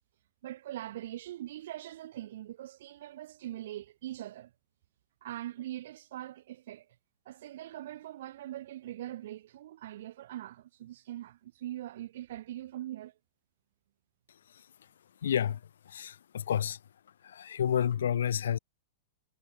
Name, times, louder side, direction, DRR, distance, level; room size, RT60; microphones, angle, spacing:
voice 1, 0.4-4.5 5.2-6.9 7.3-13.1, right 13 dB, 60° right, 0.5 m, -42 dB
voice 2, 15.2-16.8 17.2-18.6, left 9 dB, 90° left, 0.6 m, -30 dB
supercardioid pair, 155°, 0 cm